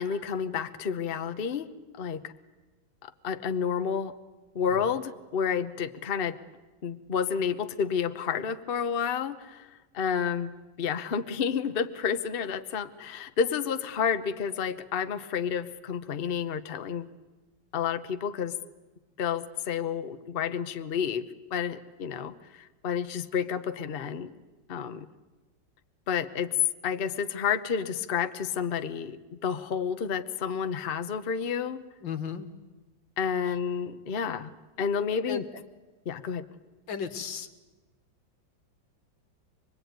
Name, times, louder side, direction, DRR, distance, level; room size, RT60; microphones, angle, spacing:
voice 1, 0.0-1.7 2.0-2.3 3.0-4.1 4.5-6.4 6.8-9.7 9.9-17.1 17.7-18.6 19.2-21.2 21.5-24.3 24.7-25.1 26.1-26.5 26.8-31.8 33.2-34.5 34.8-35.4 36.1-36.4, left 7 dB, 40° left, 10 dB, 0.9 m, -30 dB
voice 2, 32.0-32.5 33.5-33.6 35.3-35.5 36.9-37.5, left 7 dB, 80° left, 8 dB, 2.2 m, -35 dB
25.5 x 21.0 x 9.3 m, 1.2 s
omnidirectional pair, 2.0 m